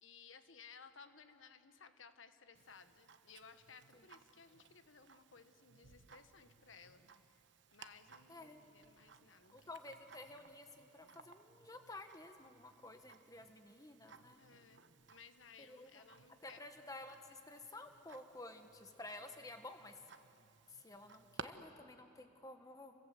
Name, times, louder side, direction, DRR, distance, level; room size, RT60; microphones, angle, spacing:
voice 1, 0.0-7.0 7.7-9.7 14.4-16.6, left 5 dB, 80° left, 10 dB, 1.3 m, -60 dB
Tick-tock, 2.5-21.4, right 5 dB, 65° right, 1.0 m, -60 dB
voice 2, 8.3-8.6 9.5-14.4 15.6-16.0 16.4-19.9 20.7-22.9, left 2 dB, 20° left, 6 dB, 1.5 m, -52 dB
30.0 x 24.0 x 7.8 m, 2.9 s
head